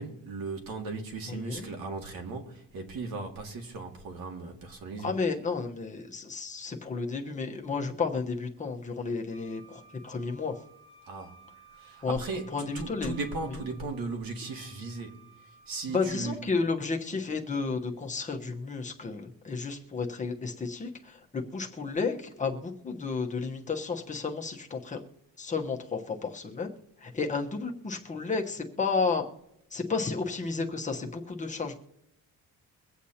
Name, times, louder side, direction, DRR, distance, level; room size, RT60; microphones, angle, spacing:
voice 1, 0.0-5.1 11.0-11.4 11.8-15.2 15.7-16.4, right 3 dB, 90° right, 2.1 m, -37 dB
voice 2, 1.3-1.7 5.0-10.6 12.0-12.2 12.5-13.1 15.9-25.0 25.4-26.7 27.0-29.2 29.7-31.7, left 4 dB, 20° left, 1.1 m, -32 dB
Wind instrument woodwind instrument, 9.3-16.1, right 3 dB, 15° right, 1.9 m, -56 dB
23.5 x 8.2 x 2.9 m
cardioid pair, 175°, 34 cm